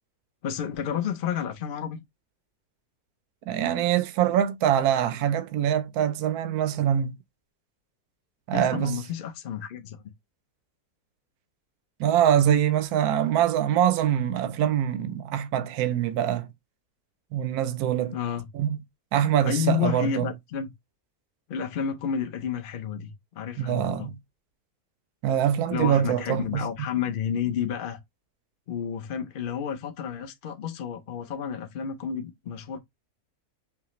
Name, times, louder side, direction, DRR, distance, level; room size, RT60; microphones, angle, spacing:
voice 1, 0.4-2.0 8.5-10.0 18.1-18.5 19.4-20.7 21.5-24.1 25.7-28.0 28.7-32.8, left 8 dB, 55° left, 0.6 m, -31 dB
voice 2, 3.5-7.1 8.5-9.0 12.0-16.5 17.3-18.2 18.5-18.8 19.1-20.3 23.6-24.2 25.2-26.7, right 10 dB, 80° right, 1.1 m, -24 dB
5.7 x 2.1 x 3.0 m
omnidirectional pair, 1.6 m